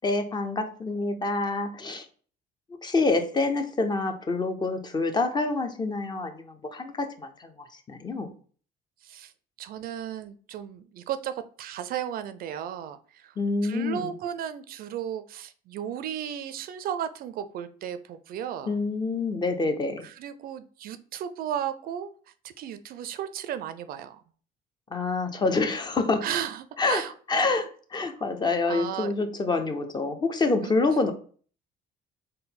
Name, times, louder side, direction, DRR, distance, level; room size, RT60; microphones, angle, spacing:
voice 1, 0.0-2.1 2.8-8.3 13.4-14.1 18.7-20.0 24.9-26.3 26.8-27.0 27.3-31.1, left 3 dB, 25° left, 7 dB, 0.5 m, -27 dB
voice 2, 9.6-13.3 13.6-18.7 20.0-22.1 22.6-24.2 26.2-27.1 28.7-29.1 30.6-30.7, right 10 dB, 60° right, 11 dB, 0.4 m, -34 dB
3.7 x 2.1 x 4.1 m, 0.43 s
cardioid pair, 110°, 17 cm